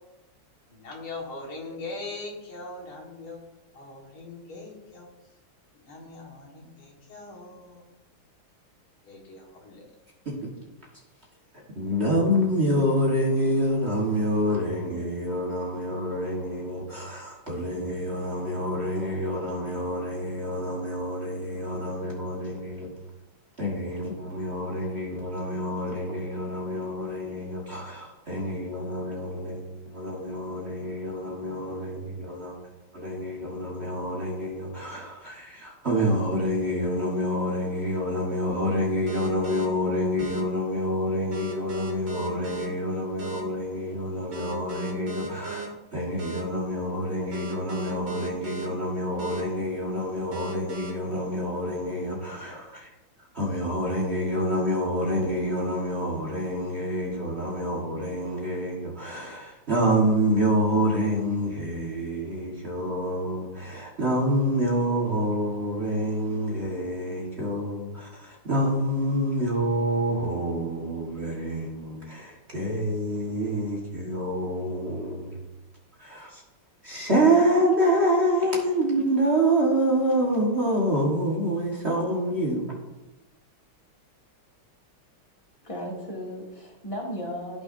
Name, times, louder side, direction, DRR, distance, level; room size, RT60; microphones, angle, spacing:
voice 1, 0.7-3.4 3.7-5.1 5.7-7.8 9.1-9.8, left 3 dB, 80° left, 2.6 m, -41 dB
voice 2, 11.7-22.9 23.6-32.5 32.9-52.9 53.3-75.4 76.0-76.4 76.8-82.6, equal, 35° right, 1.6 m, -27 dB
sound 1, 39.1-39.6 40.2-40.4 41.3-42.7 43.2-43.4 44.3-45.7 46.2-46.4 47.3-48.7 49.2-49.4 50.3-50.9, right 4 dB, 75° right, 2.6 m, -37 dB
voice 3, 85.6-87.6, equal, 15° left, 2.3 m, -35 dB
15.0 x 6.1 x 2.6 m
omnidirectional pair, 2.3 m